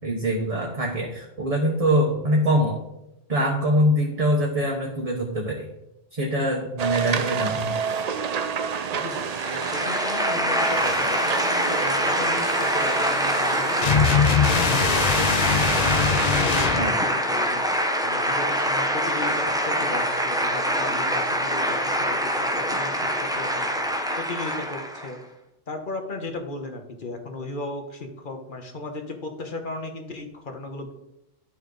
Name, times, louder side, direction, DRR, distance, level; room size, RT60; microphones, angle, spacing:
voice 1, 0.0-2.8 3.3-5.7 6.1-7.8 16.7-17.0, equal, 30° right, -1 dB, 1.1 m, -23 dB
sound 1, 6.8-16.7, right 6 dB, 60° right, 0.4 m, -30 dB
voice 2, 8.9-17.6 18.0-25.2 25.7-30.9, left 2 dB, 45° left, 4 dB, 1.3 m, -36 dB
sound 2, 9.1-25.1, equal, 5° right, 0.6 m, -25 dB
sound 3, 13.8-16.9, left 7 dB, 80° left, 0.3 m, -22 dB
11.0 x 5.9 x 3.9 m, 0.89 s
omnidirectional pair, 1.3 m